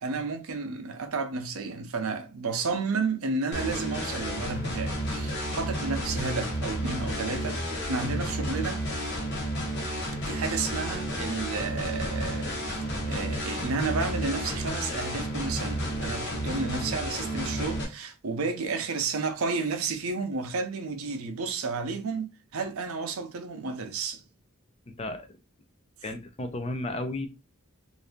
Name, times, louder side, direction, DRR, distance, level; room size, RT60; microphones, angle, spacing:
voice 1, 0.0-8.8 10.3-24.2, right 4 dB, 80° right, 0.6 m, -32 dB
sound 1, 3.5-17.8, equal, 55° left, 1.1 m, -31 dB
voice 2, 24.9-25.3 26.0-27.3, left 2 dB, 30° left, 0.5 m, -33 dB
2.7 x 2.6 x 3.5 m
head